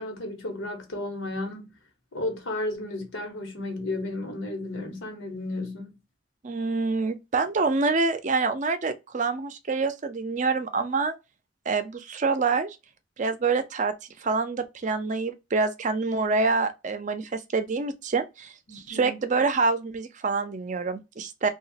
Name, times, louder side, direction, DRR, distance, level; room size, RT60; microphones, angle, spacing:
voice 1, 0.0-1.7 2.1-5.9 18.7-19.2, left 2 dB, 90° left, 1.0 m, -33 dB
voice 2, 6.4-11.1 11.7-12.8 13.2-13.9 14.2-21.5, right 4 dB, 40° right, 0.5 m, -26 dB
2.9 x 2.3 x 2.7 m
head